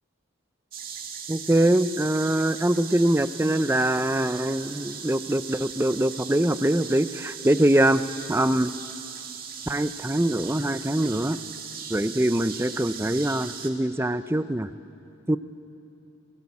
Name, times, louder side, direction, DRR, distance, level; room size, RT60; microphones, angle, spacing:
sound 1, 0.7-13.7, right 7 dB, 45° right, 2.0 m, -38 dB
voice 1, 1.3-8.0 8.3-8.7 9.7-11.4 11.9-14.7 15.3-15.4, right 1 dB, 10° right, 12 dB, 0.5 m, -23 dB
28.5 x 18.0 x 8.4 m, 2.6 s
head